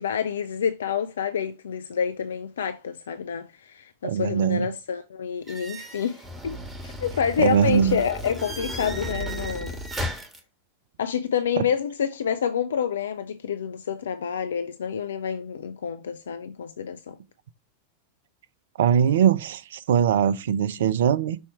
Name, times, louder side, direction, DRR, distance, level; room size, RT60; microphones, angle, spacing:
voice 1, 0.0-6.6 6.8-9.8 11.0-17.2, left 7 dB, 65° left, 0.5 m, -28 dB
voice 2, 4.0-4.7 7.4-8.0 11.6-11.7 18.8-21.4, right 8 dB, 60° right, 0.6 m, -21 dB
sound 1, 5.5-10.4, equal, 5° right, 1.6 m, -34 dB
6.4 x 4.3 x 4.6 m
figure-of-eight pair, 90°, 0 cm